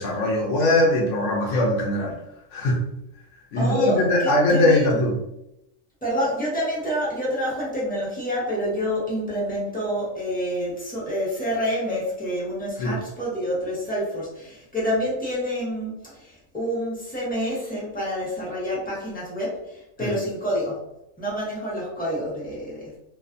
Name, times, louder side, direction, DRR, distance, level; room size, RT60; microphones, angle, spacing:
voice 1, 0.0-2.1 2.5-2.8 3.5-5.2 12.8-13.0 20.0-20.2, left 1 dB, 60° left, -3 dB, 0.9 m, -21 dB
voice 2, 3.6-5.0 6.0-20.8 21.2-22.9, equal, 5° left, -7 dB, 0.8 m, -28 dB
2.5 x 2.4 x 2.5 m, 0.84 s
omnidirectional pair, 1.5 m